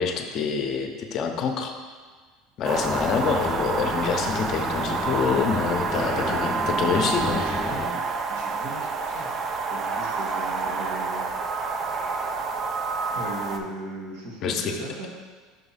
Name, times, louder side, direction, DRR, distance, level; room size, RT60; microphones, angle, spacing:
voice 1, 0.0-1.7 2.6-7.4 14.4-14.8, left 6 dB, 50° left, 4 dB, 0.7 m, -26 dB
sound 1, 2.6-13.6, right 4 dB, 35° right, 0.5 m, -28 dB
sound 2, 2.8-7.9, left 3 dB, 20° left, 0.3 m, -33 dB
voice 2, 5.9-6.4 6.7-8.0 8.3-9.3 9.7-11.2 13.1-15.1, right 2 dB, 80° right, -3 dB, 1.4 m, -36 dB
5.6 x 3.1 x 5.6 m, 1.5 s
supercardioid pair, 105°, 0 cm